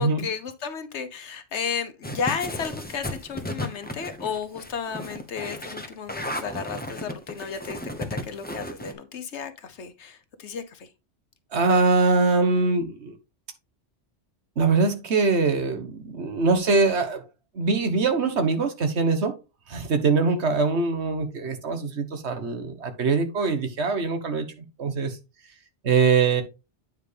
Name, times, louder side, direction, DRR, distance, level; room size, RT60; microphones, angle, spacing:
voice 1, 0.0-10.9, left 6 dB, 75° left, 1.3 m, -33 dB
sound 1, 2.0-8.9, left 1 dB, 10° left, 0.7 m, -34 dB
voice 2, 11.5-13.2 14.6-17.2 17.5-19.3 19.7-24.5 24.8-25.2 25.8-26.4, right 4 dB, 70° right, 1.5 m, -23 dB
9.1 x 4.8 x 3.3 m
omnidirectional pair, 1.2 m